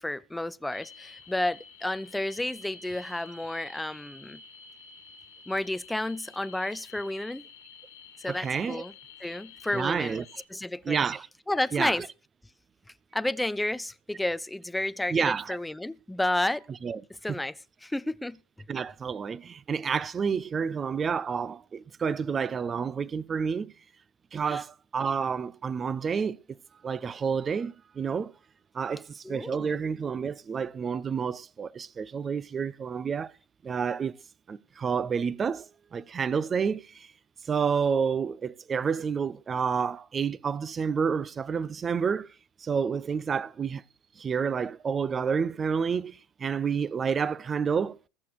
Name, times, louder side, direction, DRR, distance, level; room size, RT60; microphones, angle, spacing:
voice 1, 0.0-4.4 5.5-7.4 8.2-8.9 9.2-10.2 10.5-11.0 11.5-12.0 13.1-16.6 17.2-17.5 17.8-18.4 24.5-24.6 29.2-29.7, left 1 dB, 5° left, 0.6 m, -31 dB
sound 1, 0.7-10.5, left 5 dB, 80° left, 2.0 m, -50 dB
voice 2, 8.3-8.8 9.7-10.2 10.8-11.3 11.7-12.1 15.1-15.6 16.8-17.0 17.3-17.4 18.7-23.7 24.3-26.6 26.8-28.3 28.7-33.3 33.6-34.2 34.5-37.1 37.5-42.3 42.6-43.8 44.2-48.0, right 6 dB, 30° right, 0.8 m, -29 dB
20.0 x 6.8 x 4.8 m
hypercardioid pair, 80°, 0 cm